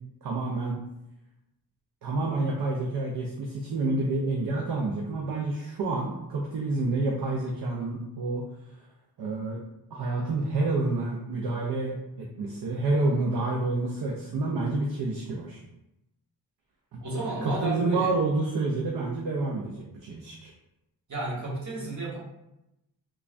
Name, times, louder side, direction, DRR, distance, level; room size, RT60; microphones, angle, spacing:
voice 1, 0.2-0.8 2.0-8.4 9.2-9.6 9.9-15.6 16.9-17.0 17.4-20.5, right 2 dB, 65° right, -1 dB, 0.6 m, -28 dB
voice 2, 17.0-18.1 21.1-22.2, right 2 dB, 45° right, -5 dB, 1.1 m, -32 dB
3.1 x 2.3 x 2.5 m, 0.89 s
cardioid pair, 80°, 40 cm